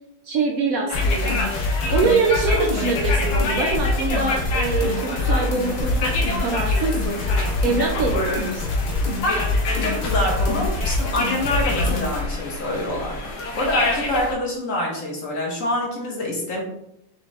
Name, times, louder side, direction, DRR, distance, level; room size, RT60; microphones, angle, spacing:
voice 1, 0.2-1.4 1.9-7.2 7.6-8.7, right 4 dB, 75° right, 1 dB, 0.8 m, -24 dB
sound 1, 0.9-12.2, left 2 dB, 90° left, 0.4 m, -24 dB
sound 2, 0.9-14.3, left 2 dB, 70° left, 1.3 m, -28 dB
voice 2, 9.2-9.5 9.8-16.6, left 1 dB, 50° left, -1 dB, 1.3 m, -26 dB
6.2 x 2.4 x 3.2 m, 0.78 s
omnidirectional pair, 2.0 m